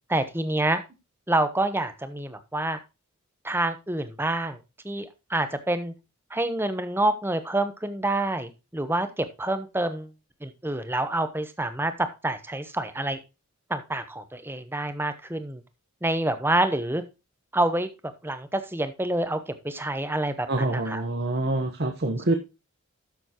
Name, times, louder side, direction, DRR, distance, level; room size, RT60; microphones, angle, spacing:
voice 1, 0.1-0.8 1.3-2.8 3.4-4.6 4.8-5.9 6.3-10.1 10.4-13.2 13.7-15.6 16.0-17.0 17.5-17.9 18.2-21.0, right 1 dB, 10° right, 10 dB, 0.9 m, -27 dB
voice 2, 20.5-22.3, right 2 dB, 50° right, 3 dB, 1.1 m, -26 dB
12.5 x 7.1 x 3.0 m, 0.27 s
head